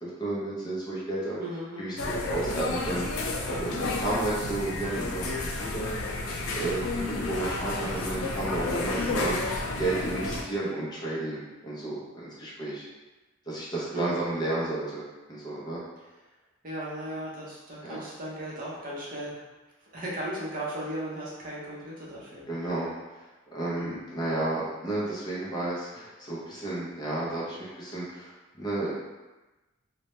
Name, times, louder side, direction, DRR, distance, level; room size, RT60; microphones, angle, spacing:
voice 1, 0.0-1.4 1.8-6.2 6.5-12.8 13.5-15.8 17.8-18.0 22.5-28.9, right 2 dB, 20° left, -6 dB, 0.4 m, -32 dB
voice 2, 1.4-2.0 13.9-14.2 16.6-19.4 19.8-22.4 23.8-24.0, right 1 dB, 40° right, -5 dB, 0.6 m, -36 dB
sound 1, 2.0-10.4, left 2 dB, 85° left, 0.4 m, -31 dB
2.1 x 2.1 x 2.9 m, 1.1 s
head